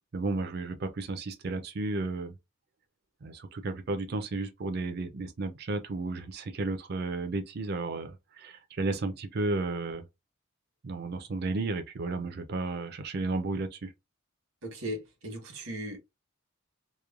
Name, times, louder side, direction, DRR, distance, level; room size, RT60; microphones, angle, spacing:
voice 1, 0.1-2.3 3.2-10.0 10.8-13.9, right 3 dB, 50° right, 0.4 m, -33 dB
voice 2, 14.6-16.0, equal, 80° right, 1.1 m, -37 dB
3.0 x 2.1 x 2.3 m
head